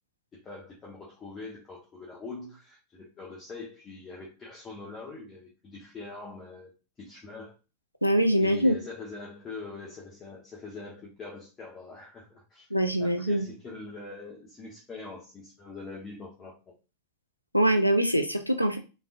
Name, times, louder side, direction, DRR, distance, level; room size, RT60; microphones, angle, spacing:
voice 1, 0.3-6.7 7.0-7.5 8.4-12.7 13.0-16.5, left 3 dB, 20° left, -4 dB, 1.0 m, -43 dB
voice 2, 8.0-8.8 12.7-13.4 17.5-18.8, right 1 dB, 90° left, 5 dB, 0.5 m, -23 dB
3.5 x 3.1 x 2.4 m, 0.31 s
figure-of-eight pair, 90°, 0 cm